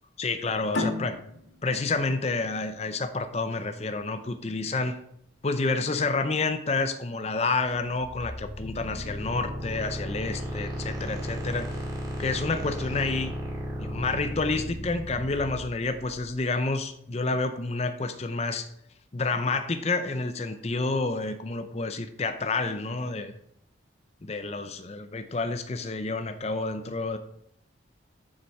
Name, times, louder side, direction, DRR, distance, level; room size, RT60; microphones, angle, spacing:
voice 1, 0.2-1.2 1.6-5.0 5.4-11.7 12.2-13.3 13.8-18.7 19.1-23.3 24.2-27.2, left 3 dB, 35° left, 8 dB, 0.5 m, -29 dB
sound 1, 0.7-3.9, left 2 dB, 85° left, 1.6 m, -34 dB
sound 2, 7.6-16.5, equal, 20° right, 2.1 m, -35 dB
7.6 x 6.9 x 4.8 m, 0.72 s
head